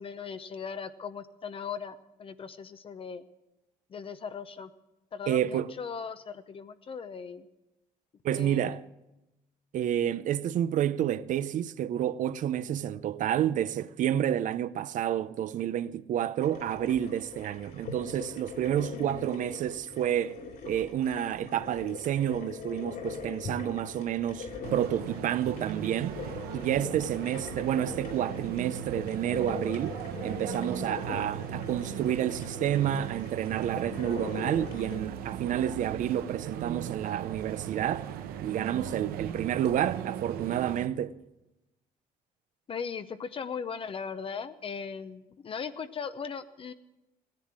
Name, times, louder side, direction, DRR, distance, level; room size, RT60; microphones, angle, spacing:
voice 1, 0.0-3.2 3.9-4.7 5.1-7.5 8.3-8.8 18.9-19.3 42.7-46.7, left 6 dB, 35° left, 0.7 m, -38 dB
voice 2, 5.3-5.7 8.2-8.8 9.7-20.4 20.6-26.2 26.5-38.1 38.4-41.1, right 10 dB, 60° right, 0.6 m, -29 dB
sound 1, 16.4-35.0, left 5 dB, 70° left, 3.3 m, -42 dB
sound 2, 24.6-40.9, right 9 dB, 90° right, 0.9 m, -38 dB
16.0 x 10.5 x 7.5 m
cardioid pair, 120°, 15 cm